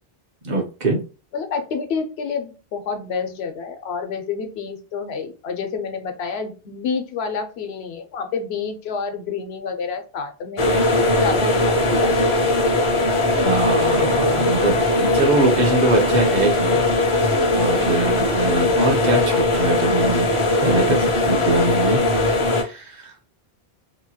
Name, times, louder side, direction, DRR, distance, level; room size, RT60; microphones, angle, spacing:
voice 1, 0.4-1.0 13.4-16.8 17.5-20.3 20.6-22.0 22.5-23.1, right 2 dB, 50° right, 1 dB, 0.7 m, -22 dB
voice 2, 1.3-12.3, left 5 dB, 90° left, 6 dB, 0.8 m, -29 dB
sound 1, 10.6-22.6, left 2 dB, 45° left, 0.4 m, -19 dB
2.9 x 2.2 x 2.7 m, 0.34 s
omnidirectional pair, 1.0 m